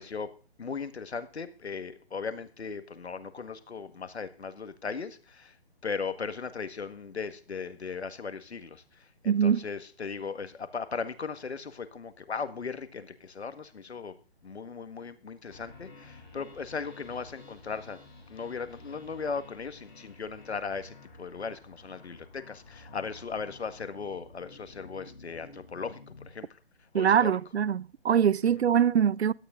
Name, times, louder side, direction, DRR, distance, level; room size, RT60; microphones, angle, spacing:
voice 1, 0.0-5.6 5.8-14.2 14.4-18.0 18.3-26.6 26.9-27.4 28.5-28.6, left 5 dB, 85° left, 1.8 m, -38 dB
voice 2, 9.3-9.6 26.9-29.3, right 8 dB, 90° right, 0.6 m, -23 dB
sound 1, 15.5-26.3, left 3 dB, 45° left, 5.8 m, -51 dB
17.0 x 12.0 x 3.8 m
hypercardioid pair, 170°, 32 cm